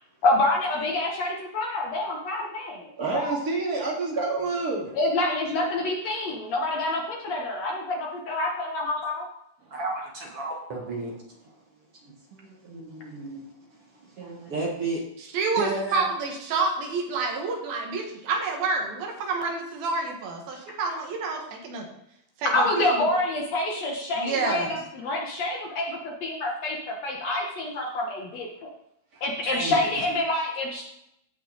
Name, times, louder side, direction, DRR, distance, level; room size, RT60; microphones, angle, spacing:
voice 1, 0.2-3.4 5.0-9.3 22.5-28.7 29.2-30.8, left 2 dB, 60° left, 0 dB, 2.0 m, -27 dB
voice 2, 3.0-4.9 29.1-29.2, right 3 dB, 30° right, -2 dB, 2.2 m, -28 dB
voice 3, 9.7-11.4 12.0-12.1 12.5-13.4 13.9-15.0 15.6-16.1 29.4-29.8, right 3 dB, 50° right, -1 dB, 2.0 m, -32 dB
voice 4, 15.3-21.9 22.4-23.1 24.2-24.7, right 4 dB, 80° right, 1 dB, 3.5 m, -28 dB
16.0 x 5.6 x 4.0 m, 0.78 s
omnidirectional pair, 4.2 m